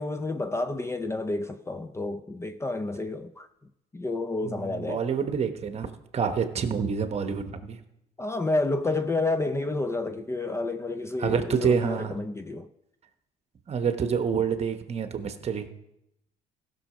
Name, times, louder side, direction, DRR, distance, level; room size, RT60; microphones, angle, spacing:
voice 1, 0.0-3.5 3.9-5.0 8.2-12.7, left 2 dB, 15° left, 0.5 m, -30 dB
voice 2, 4.4-7.8 11.2-12.1 13.7-15.7, right 6 dB, 40° right, 1.1 m, -27 dB
15.5 x 6.4 x 5.0 m
cardioid pair, 110°, 17 cm